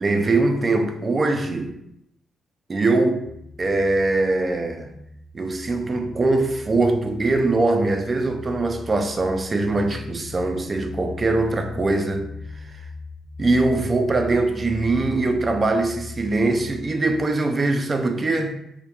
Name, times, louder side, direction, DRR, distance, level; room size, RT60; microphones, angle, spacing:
voice 1, 0.0-1.7 2.7-3.2 3.6-4.9 5.3-12.3 13.4-18.6, right 2 dB, 30° right, 0.3 m, -22 dB
sound 1, 3.2-17.2, left 3 dB, 55° left, 0.5 m, -39 dB
2.2 x 2.1 x 2.8 m
cardioid pair, 90°, 0 cm